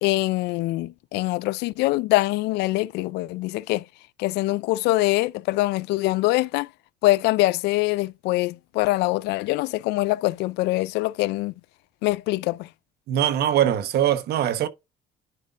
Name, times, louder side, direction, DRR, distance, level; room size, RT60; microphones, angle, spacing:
voice 1, 0.0-3.9 4.2-6.7 7.0-11.5 12.0-12.7, left 19 dB, 90° left, 0.4 m, -24 dB
voice 2, 13.1-14.7, right 10 dB, 70° right, 1.2 m, -22 dB
11.0 x 5.2 x 2.5 m
cardioid pair, 110°, 17 cm